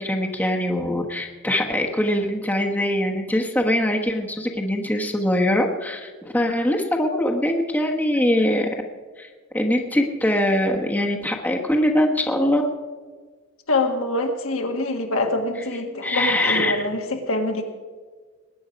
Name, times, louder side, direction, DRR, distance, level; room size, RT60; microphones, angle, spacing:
voice 1, 0.0-8.7 9.2-9.3 9.5-12.6 16.0-16.8, left 1 dB, 10° left, 1 dB, 1.2 m, -22 dB
voice 2, 13.7-17.6, left 2 dB, 70° left, 4 dB, 1.7 m, -25 dB
20.5 x 9.5 x 5.2 m, 1.5 s
head